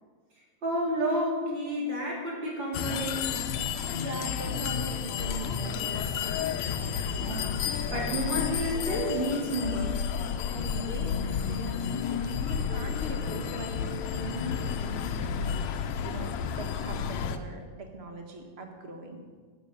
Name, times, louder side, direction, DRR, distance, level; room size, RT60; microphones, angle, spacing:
voice 1, 0.6-3.4 7.2-7.6 7.9-9.9, equal, 35° right, -4 dB, 4.3 m, -30 dB
sound 1, 2.7-17.4, left 7 dB, 75° left, 1.7 m, -31 dB
voice 2, 3.9-7.0 10.5-13.8 14.1-19.2, right 1 dB, 75° right, 3 dB, 0.5 m, -41 dB
12.0 x 9.9 x 7.1 m, 1.5 s
omnidirectional pair, 3.8 m